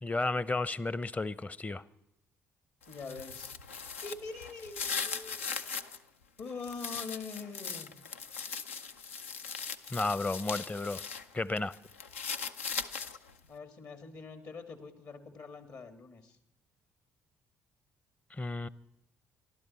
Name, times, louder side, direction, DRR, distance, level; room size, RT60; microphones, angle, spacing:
voice 1, 0.0-1.8 9.9-11.0 11.3-11.7 18.3-18.7, left 2 dB, 20° left, 0.7 m, -32 dB
sound 1, 2.8-6.0 6.4-11.2 11.6-13.3, left 6 dB, 90° left, 0.5 m, -39 dB
voice 2, 2.9-3.5 4.0-5.4 6.4-7.9 13.5-16.4, left 4 dB, 60° left, 2.2 m, -44 dB
26.0 x 12.0 x 4.3 m
hypercardioid pair, 45°, 7 cm